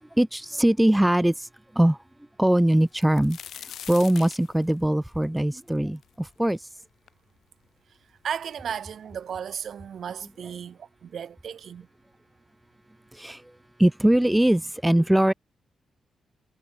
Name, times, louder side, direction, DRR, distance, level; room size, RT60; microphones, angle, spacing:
voice 1, 0.2-1.5 1.7-2.0 2.4-6.7 13.1-13.4 13.8-15.3, right 1 dB, 10° right, 0.8 m, -22 dB
sound 1, 2.8-6.6 7.1-7.2 7.9-8.0 8.3-9.0 9.9-10.0 10.3-10.5, left 9 dB, 70° left, 4.0 m, -43 dB
voice 2, 8.2-11.9, right 8 dB, 65° right, 6.9 m, -35 dB
hypercardioid pair, 45°, 0 cm